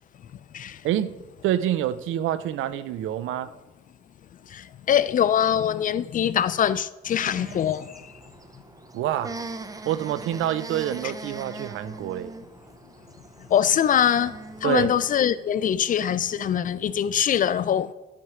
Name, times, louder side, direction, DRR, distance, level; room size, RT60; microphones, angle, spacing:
voice 1, 0.8-1.2 1.4-3.5 8.9-9.4 9.9-12.3 14.6-14.9, right 11 dB, 80° right, 0.5 m, -27 dB
voice 2, 4.5-7.9 13.5-14.4 14.6-17.9, left 9 dB, 45° left, 0.4 m, -23 dB
sound 1, 7.0-15.0, right 3 dB, 20° right, 0.5 m, -41 dB
9.9 x 4.4 x 4.8 m
cardioid pair, 90°, 20 cm